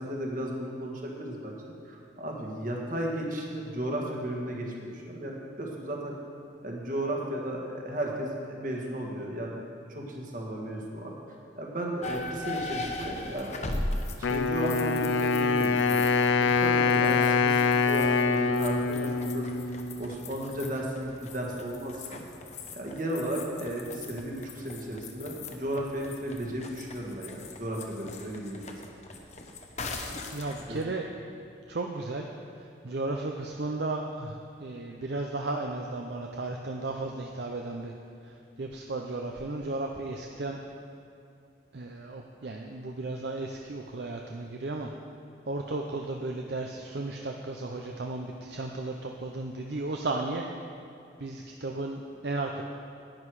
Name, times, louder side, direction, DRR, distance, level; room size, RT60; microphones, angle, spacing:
voice 1, 0.0-6.1 6.6-9.6 9.9-11.1 11.6-13.6 14.2-22.2 22.7-28.7 30.7-30.8, right 1 dB, 45° right, -1 dB, 1.6 m, -34 dB
sound 1, 12.0-30.8, left 2 dB, 35° left, 0.8 m, -40 dB
Wind instrument woodwind instrument, 14.2-20.2, left 4 dB, 85° left, 0.5 m, -25 dB
voice 2, 30.3-31.1 31.7-32.3 32.6-37.9 38.2-40.6 41.7-44.9 45.5-50.4 51.2-52.6, right 2 dB, 60° right, 2 dB, 0.6 m, -34 dB
11.0 x 9.7 x 4.8 m, 2.5 s
head